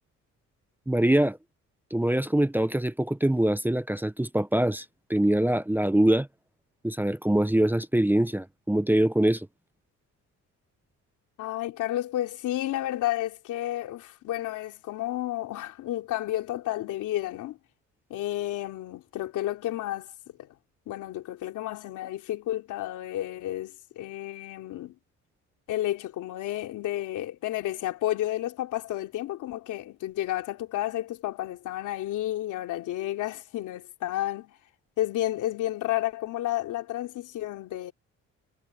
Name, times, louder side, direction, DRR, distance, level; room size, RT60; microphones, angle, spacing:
voice 1, 0.9-1.4 1.9-4.8 5.1-6.3 6.8-9.5, right 1 dB, 5° right, 0.8 m, -23 dB
voice 2, 11.4-17.6 18.1-20.1 20.4-20.5 20.9-24.9 25.7-34.6 35.0-37.9, left 14 dB, 90° left, 3.3 m, -31 dB
cardioid pair, 90°, 30 cm